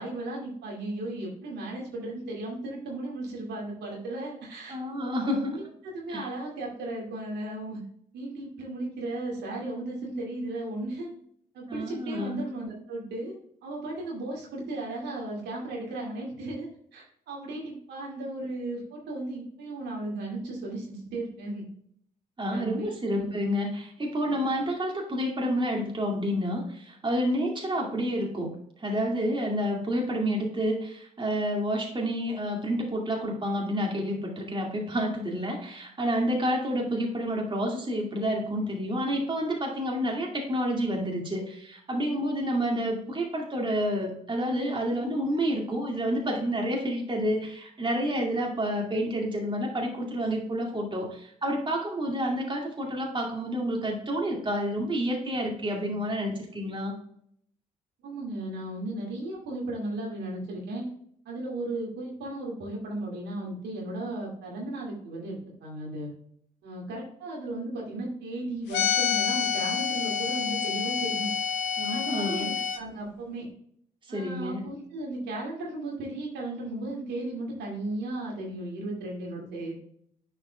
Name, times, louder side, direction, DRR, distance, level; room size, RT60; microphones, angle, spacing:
voice 1, 0.0-4.8 5.2-7.8 8.1-11.1 11.5-21.7 22.4-23.3 58.0-60.9 61.3-66.1 66.6-71.3 71.9-73.5 74.1-79.8, right 2 dB, 65° right, -3 dB, 2.3 m, -35 dB
voice 2, 4.7-5.6 6.1-6.2 11.7-12.4 22.4-28.5 28.8-56.9 71.8-72.5 74.1-74.6, equal, 25° right, 0 dB, 2.2 m, -29 dB
sound 1, 68.7-72.8, left 7 dB, 65° left, 0.8 m, -28 dB
10.5 x 4.6 x 2.3 m, 0.67 s
figure-of-eight pair, 45°, 19 cm